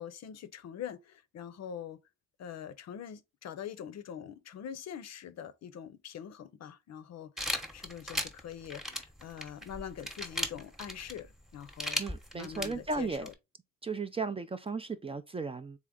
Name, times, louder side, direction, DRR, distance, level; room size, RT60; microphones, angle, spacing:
voice 1, 0.0-2.0 2.4-12.0 12.3-13.3, left 9 dB, 60° left, 0.6 m, -44 dB
sound 1, 7.4-13.3, left 1 dB, ahead, 0.9 m, -37 dB
voice 2, 12.0-13.3 13.8-15.8, right 4 dB, 20° right, 0.4 m, -35 dB
3.6 x 3.3 x 3.7 m
cardioid pair, 90°, 30 cm